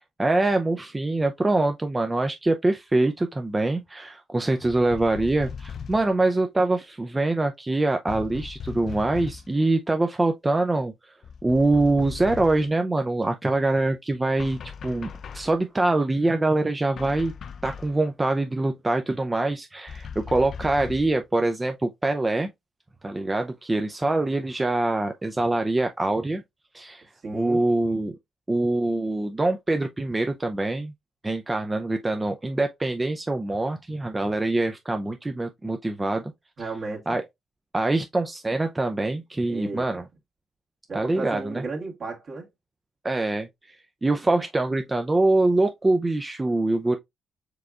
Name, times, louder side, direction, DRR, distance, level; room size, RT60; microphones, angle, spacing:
voice 1, 0.2-11.1 11.4-17.3 17.6-22.5 23.0-26.4 26.7-27.0 27.3-28.2 28.5-30.9 31.2-36.3 37.1-37.2 37.7-40.0 40.9-41.6 43.0-47.0, right 2 dB, 20° right, 0.5 m, -24 dB
sound 1, 4.7-6.1 8.1-9.5 11.2-12.7 14.4-15.6 17.0-18.0 19.9-21.2, left 6 dB, 60° left, 0.4 m, -38 dB
voice 2, 27.2-27.6 36.6-37.2 39.5-40.0 40.9-42.5, right 3 dB, 50° right, 1.7 m, -34 dB
4.8 x 3.4 x 2.4 m
hypercardioid pair, 50°, 0 cm